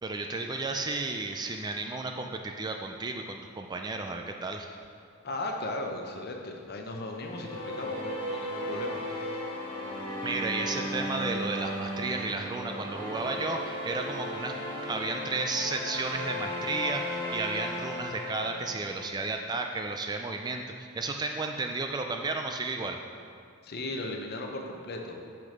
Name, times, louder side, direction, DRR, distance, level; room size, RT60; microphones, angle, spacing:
voice 1, 0.0-4.7 10.2-13.6 13.8-14.5 14.9-20.6 20.9-23.0, right 3 dB, 20° right, 4 dB, 0.3 m, -33 dB
voice 2, 5.2-9.5 23.6-25.2, left 2 dB, 45° left, 2 dB, 0.8 m, -37 dB
sound 1, 7.0-19.4, equal, 25° left, 1.6 m, -36 dB
6.2 x 5.9 x 5.1 m, 2.3 s
head